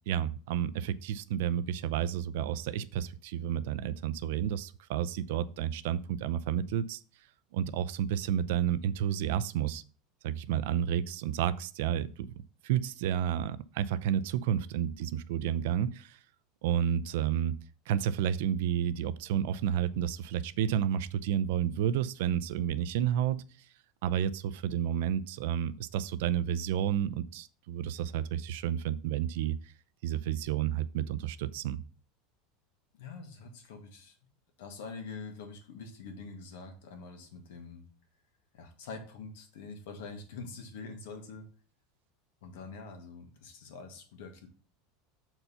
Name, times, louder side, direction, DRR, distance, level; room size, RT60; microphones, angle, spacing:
voice 1, 0.1-7.0 7.5-9.8 10.2-12.3 12.6-16.2 16.6-17.6 17.9-23.4 24.0-29.7 30.0-31.8, right 10 dB, 75° right, 15 dB, 0.5 m, -31 dB
voice 2, 33.0-34.2 34.6-37.8 38.5-41.5 42.4-44.5, left 4 dB, 85° left, 5 dB, 1.9 m, -45 dB
6.6 x 4.5 x 5.6 m, 0.39 s
supercardioid pair, 150°, 0 cm